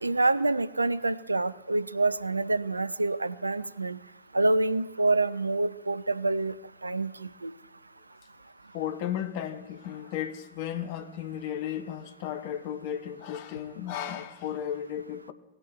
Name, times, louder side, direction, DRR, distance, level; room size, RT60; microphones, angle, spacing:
voice 1, 0.0-4.0 4.3-6.5 6.8-7.5, right 2 dB, 80° right, 0.4 m, -27 dB
voice 2, 8.7-15.3, left 10 dB, 50° left, 0.7 m, -34 dB
18.5 x 6.6 x 3.0 m
figure-of-eight pair, 90°, 0 cm